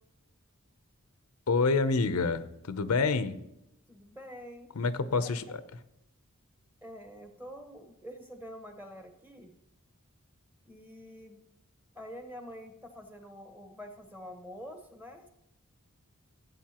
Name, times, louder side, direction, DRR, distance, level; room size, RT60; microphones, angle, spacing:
voice 1, 1.5-3.4 4.8-5.6, left 4 dB, 85° left, 12 dB, 0.6 m, -27 dB
voice 2, 3.9-4.7 5.2-5.3 6.8-9.5 10.6-11.4 11.9-15.3, equal, 10° right, 4 dB, 1.2 m, -46 dB
16.5 x 8.0 x 2.9 m, 0.85 s
head